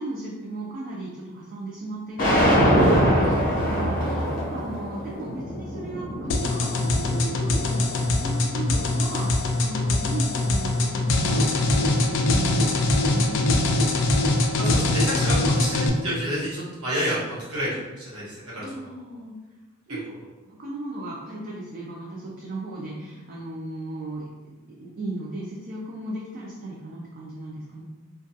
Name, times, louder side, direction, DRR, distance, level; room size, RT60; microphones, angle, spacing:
voice 1, 0.0-13.5 18.6-19.4 19.9-20.0 20.4-27.8, right 2 dB, 40° right, -4 dB, 0.4 m, -36 dB
sound 1, 2.2-8.3, equal, 40° left, 0.7 m, -23 dB
sound 2, 6.3-15.9, left 2 dB, 60° left, 0.3 m, -22 dB
voice 2, 14.6-19.2, equal, 85° right, -7 dB, 1.0 m, -30 dB
2.3 x 2.2 x 2.6 m, 1.2 s
head